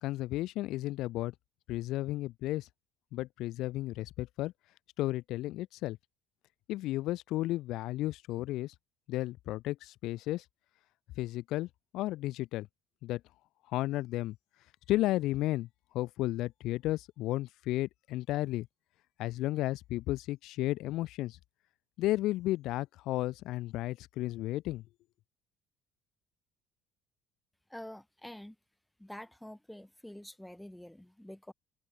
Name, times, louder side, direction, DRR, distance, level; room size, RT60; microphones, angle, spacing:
voice 1, 0.0-1.3 1.7-2.7 3.1-4.5 5.0-6.0 6.7-8.7 9.1-10.4 11.2-12.7 13.0-13.2 13.7-14.3 14.9-15.7 15.9-18.7 19.2-21.4 22.0-24.8, left 16 dB, 70° left, 1.7 m, -33 dB
voice 2, 27.7-28.6 29.0-31.5, left 1 dB, 5° left, 2.4 m, -47 dB
open air
cardioid pair, 135°, 0 cm